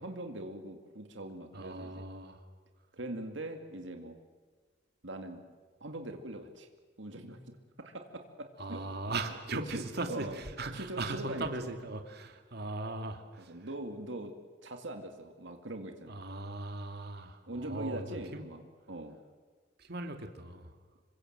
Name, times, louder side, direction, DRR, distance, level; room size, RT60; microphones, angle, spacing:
voice 1, 0.0-2.0 2.9-4.2 5.0-5.4 5.8-6.7 7.0-8.8 9.7-10.4 10.7-11.7 13.5-14.3 14.6-16.2 17.5-18.6 18.9-19.2, right 1 dB, 75° right, 5 dB, 2.2 m, -42 dB
voice 2, 1.5-2.4 8.6-13.7 16.1-18.4 19.8-20.7, right 2 dB, 60° right, 6 dB, 2.3 m, -39 dB
27.5 x 23.5 x 7.9 m, 1.5 s
head